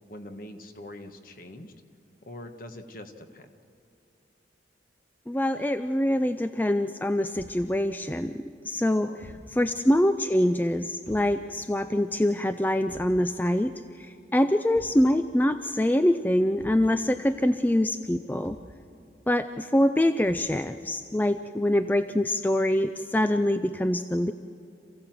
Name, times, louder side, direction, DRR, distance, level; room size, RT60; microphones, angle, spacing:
voice 1, 0.1-1.7 2.2-3.5 9.0-9.8, left 1 dB, 50° left, 6 dB, 1.4 m, -44 dB
voice 2, 5.3-13.7 14.0-18.6 19.3-24.3, left 1 dB, 10° left, 9 dB, 0.4 m, -25 dB
Thump thud, 7.3-7.7 9.2-9.5 11.0-11.4 12.9-13.2 14.7-15.1 16.6-16.9 18.4-18.8 20.3-20.6, equal, 85° left, 2.4 m, -47 dB
27.5 x 16.0 x 7.6 m, 2.7 s
head